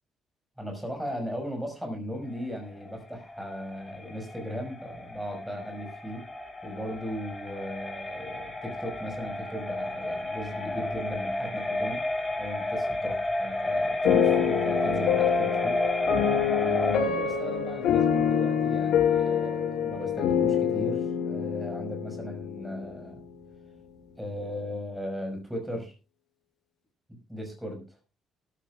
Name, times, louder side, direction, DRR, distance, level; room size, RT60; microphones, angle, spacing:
voice 1, 0.6-6.2 6.6-12.0 12.4-13.1 13.4-15.8 16.5-23.2 24.2-25.9 27.3-28.0, equal, 5° right, 3 dB, 5.5 m, -37 dB
sound 1, 2.3-17.0, left 2 dB, 10° left, 3.3 m, -32 dB
sound 2, 14.0-23.2, left 8 dB, 80° left, 5.2 m, -26 dB
18.0 x 13.5 x 2.4 m, 0.30 s
cardioid pair, 155°, 0 cm